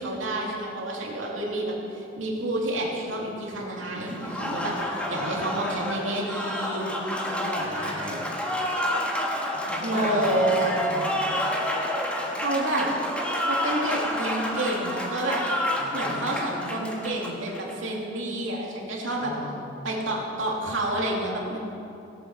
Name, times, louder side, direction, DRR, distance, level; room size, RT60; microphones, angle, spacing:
voice 1, 0.0-6.9 7.6-8.2 9.8-10.7 12.4-12.9 13.5-15.4 15.9-19.3 19.8-21.6, right 1 dB, 85° right, -2 dB, 2.6 m, -29 dB
Applause, 4.1-17.7, left 1 dB, 5° left, 1.4 m, -29 dB
voice 2, 4.9-5.4 7.2-8.2 9.6-11.2 15.7-16.6 19.2-19.9, left 1 dB, 40° left, -4 dB, 3.2 m, -37 dB
17.5 x 8.6 x 6.0 m, 2.7 s
head